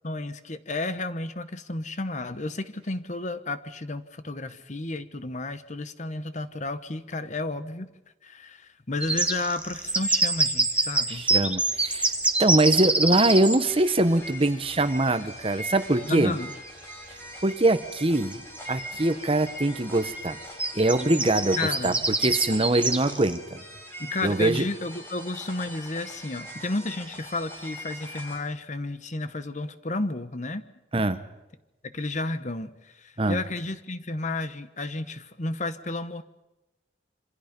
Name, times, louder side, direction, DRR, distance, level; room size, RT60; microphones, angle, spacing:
voice 1, 0.0-7.9 8.2-11.3 16.0-16.5 21.6-22.0 24.0-30.6 31.8-36.2, left 2 dB, 45° left, 12 dB, 1.1 m, -32 dB
sound 1, 9.0-13.6 16.0-16.1 16.5-16.6 17.9-18.0 18.3-18.8 19.3-19.5 20.6-23.4, right 2 dB, 5° right, 1.7 m, -25 dB
voice 2, 11.1-12.1 12.4-16.4 17.4-18.4 18.7-20.4 20.7-21.9 22.2-23.6 24.2-24.6 30.9-31.2 33.2-33.4, right 2 dB, 30° right, 11 dB, 1.1 m, -23 dB
sound 2, 13.7-28.4, equal, 15° left, 6.7 m, -42 dB
27.0 x 25.5 x 5.3 m, 1.0 s
head